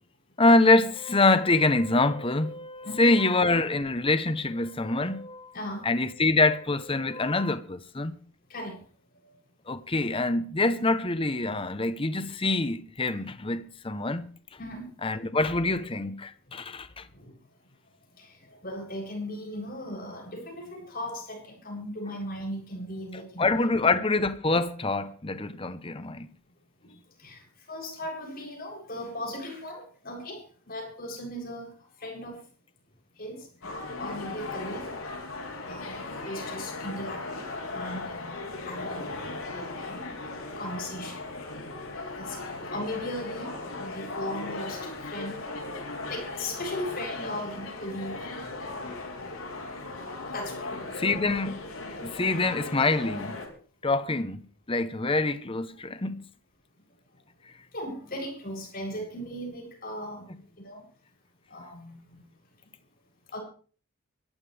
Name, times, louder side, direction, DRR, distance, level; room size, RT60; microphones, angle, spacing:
voice 1, 0.4-5.5 5.8-8.2 9.7-14.3 15.0-17.1 23.1-26.3 51.0-51.6 52.0-53.4 53.8-56.2 60.3-60.4, left 2 dB, 25° left, 0.9 m, -25 dB
voice 2, 5.5-5.9 8.5-8.8 10.7-10.8 14.6-14.9 16.5-16.6 17.1-17.3 18.2-23.5 26.8-26.9 27.2-27.4 27.7-31.7 32.0-32.3 33.2-33.5 34.0-34.8 35.6-38.3 38.6-39.2 39.5-40.0 40.6-41.2 42.2-45.4 46.1-48.3 50.3-50.7 57.7-60.2 60.6-60.8 61.5-62.2 63.3-63.4, left 1 dB, 45° left, 8.0 m, -37 dB
sound 1, 33.6-53.5, left 3 dB, 80° left, 5.8 m, -37 dB
24.5 x 14.5 x 3.4 m
head